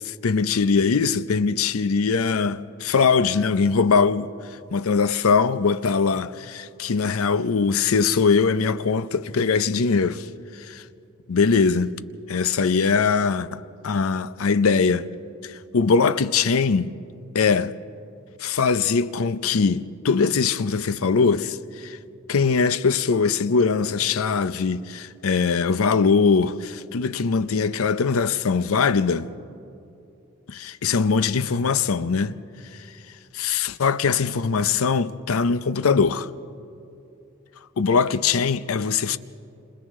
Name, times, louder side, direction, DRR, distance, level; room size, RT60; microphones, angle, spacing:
voice 1, 0.0-4.3 4.7-10.3 10.6-10.8 11.3-11.9 12.3-15.1 15.4-16.9 17.3-17.7 18.4-22.0 22.3-29.3 30.5-32.3 33.3-36.3 37.8-39.2, left 5 dB, 80° left, 0.6 m, -21 dB
29.5 x 27.0 x 3.7 m
head